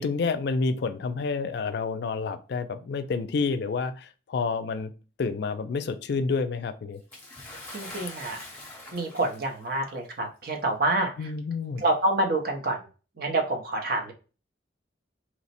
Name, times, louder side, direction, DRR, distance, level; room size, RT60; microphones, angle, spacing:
voice 1, 0.0-4.9 5.2-7.0 11.2-11.8, left 4 dB, 60° left, 10 dB, 0.4 m, -29 dB
Bathtub (filling or washing) / Splash splatter, 7.1-9.7 10.6-10.7 11.7-11.8, left 2 dB, 10° left, 0.8 m, -43 dB
voice 2, 7.7-8.4 8.9-11.3 11.8-12.9 13.2-14.1, right 2 dB, 55° right, 2 dB, 0.7 m, -27 dB
3.0 x 2.1 x 4.1 m, 0.35 s
head